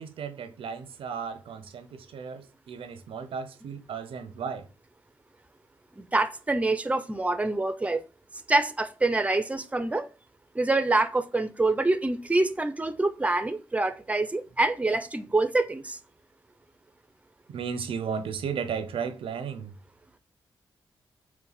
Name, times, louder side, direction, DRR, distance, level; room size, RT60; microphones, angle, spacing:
voice 1, 0.0-4.7 17.5-19.8, right 6 dB, 75° right, 0.4 m, -35 dB
voice 2, 6.0-8.0 8.5-10.1 10.6-16.0, right 2 dB, 15° right, 0.5 m, -26 dB
4.0 x 2.1 x 3.9 m
supercardioid pair, 40°, 9 cm